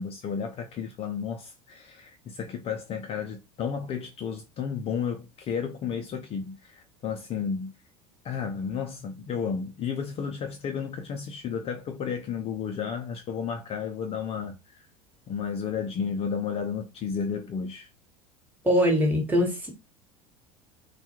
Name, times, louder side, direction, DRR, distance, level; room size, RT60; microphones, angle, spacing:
voice 1, 0.0-7.7 8.2-14.9 15.3-17.9, left 6 dB, 35° left, 0.4 m, -32 dB
voice 2, 18.6-19.7, equal, 10° right, 1.1 m, -22 dB
2.2 x 2.2 x 2.8 m
hypercardioid pair, 75°, 18 cm